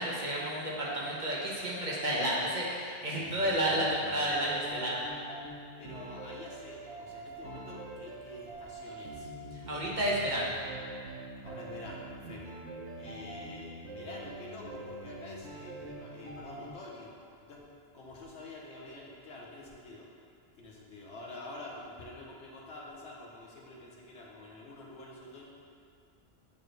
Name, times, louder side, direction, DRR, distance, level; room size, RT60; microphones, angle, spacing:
voice 1, 0.0-5.0 9.7-10.5, right 1 dB, 45° right, -5 dB, 1.1 m, -31 dB
sound 1, 3.2-16.7, right 1 dB, 85° right, 1.2 m, -45 dB
voice 2, 5.8-9.3 11.4-12.4 13.0-17.1 17.5-17.6 17.9-20.1 20.6-25.5, left 2 dB, 80° left, -2 dB, 1.2 m, -47 dB
8.4 x 4.3 x 3.3 m, 2.3 s
omnidirectional pair, 1.1 m